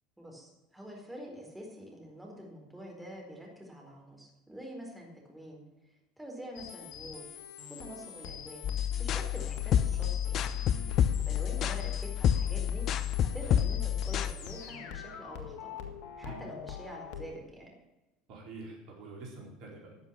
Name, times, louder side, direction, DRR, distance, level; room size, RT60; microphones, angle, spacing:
voice 1, 0.2-5.6 6.2-7.3 7.7-8.7 9.0-10.5 10.9-12.8 13.2-15.9 16.2-17.7, equal, 5° right, -1 dB, 4.3 m, -46 dB
sound 1, 6.5-17.3, left 8 dB, 65° left, 1.6 m, -44 dB
sound 2, 8.6-14.3, left 9 dB, 50° left, 0.7 m, -29 dB
voice 2, 10.6-11.1 16.2-16.4 18.3-20.1, right 2 dB, 60° right, -2 dB, 4.4 m, -46 dB
12.0 x 7.1 x 8.7 m, 1.0 s
hypercardioid pair, 75°, 0 cm